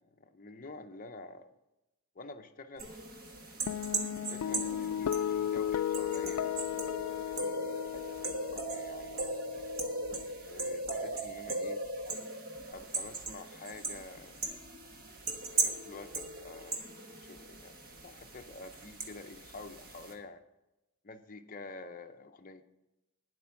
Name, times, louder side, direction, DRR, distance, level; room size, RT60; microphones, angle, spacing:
voice 1, 0.2-1.5 2.1-2.9 4.3-6.6 7.0-9.2 10.4-11.8 12.7-14.4 15.6-16.8 17.1-20.4 21.0-22.6, left 3 dB, 40° left, 6 dB, 0.6 m, -48 dB
sound 1, 2.8-20.1, right 2 dB, 40° right, 1.3 m, -38 dB
sound 2, 3.7-10.2, left 9 dB, 85° left, 0.3 m, -35 dB
9.6 x 7.8 x 5.8 m, 0.97 s
head